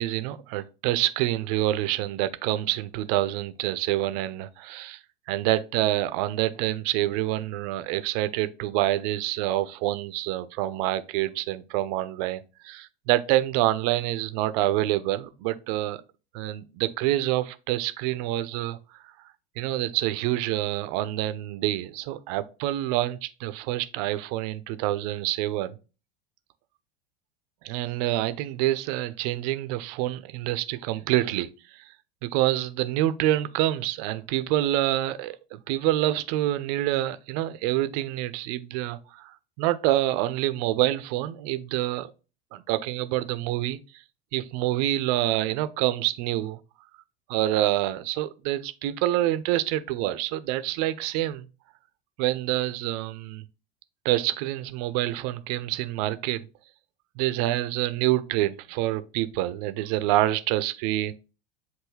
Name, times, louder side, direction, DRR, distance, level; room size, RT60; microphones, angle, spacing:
voice 1, 0.0-5.0 5.3-16.0 16.3-19.0 19.6-25.8 27.6-31.5 32.2-42.1 42.5-43.8 44.3-46.6 47.3-51.5 52.2-53.4 54.0-56.4 57.2-61.1, right 15 dB, 40° right, 0.5 m, -27 dB
5.4 x 2.6 x 3.1 m
figure-of-eight pair, 80°, 30 cm